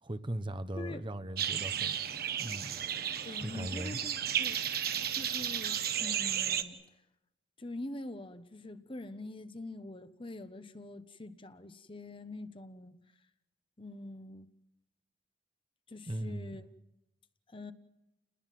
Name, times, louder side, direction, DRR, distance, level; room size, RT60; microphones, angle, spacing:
voice 1, 0.0-2.0 2.4-2.7 3.4-4.0 16.1-16.6, right 1 dB, 30° right, 0.9 m, -38 dB
sound 1, 1.4-6.6, right 9 dB, 60° right, 1.4 m, -33 dB
voice 2, 3.2-4.6 5.2-6.8 7.6-13.0 13.8-14.5 15.9-16.7 17.5-17.7, left 2 dB, 30° left, 1.1 m, -44 dB
29.5 x 20.5 x 7.7 m
head